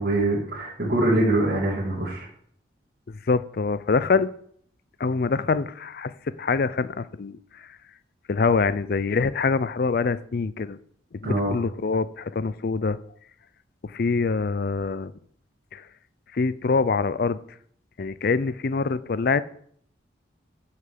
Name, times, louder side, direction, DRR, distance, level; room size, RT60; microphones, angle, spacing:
voice 1, 0.0-2.3 11.2-11.5, right 1 dB, 55° right, -7 dB, 2.2 m, -23 dB
voice 2, 3.1-4.3 5.0-6.1 6.4-7.7 8.3-10.8 11.1-13.0 13.8-15.1 15.7-15.8 16.3-17.4 18.0-19.4, left 4 dB, 50° left, 15 dB, 0.4 m, -25 dB
6.4 x 5.8 x 6.8 m, 0.62 s
head